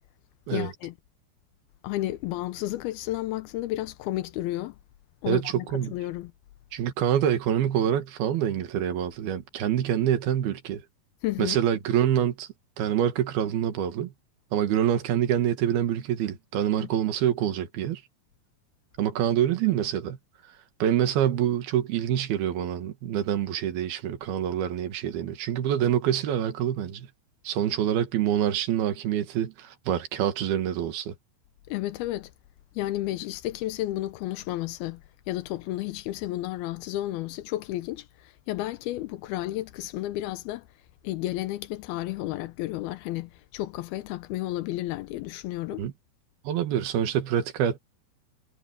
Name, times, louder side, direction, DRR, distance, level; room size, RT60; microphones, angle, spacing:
voice 1, 0.5-0.9 1.8-4.8 5.2-6.3 11.2-11.6 16.8-16.9 31.7-32.3 32.8-35.0 35.3-40.7 41.0-45.9, left 16 dB, 90° left, 2.7 m, -32 dB
voice 2, 5.2-5.9 6.7-10.8 11.4-12.5 12.8-14.1 14.5-18.0 19.0-20.2 20.8-27.1 27.5-31.1 45.8-45.9 46.5-47.8, right 10 dB, 80° right, 3.7 m, -26 dB
omnidirectional pair, 4.4 m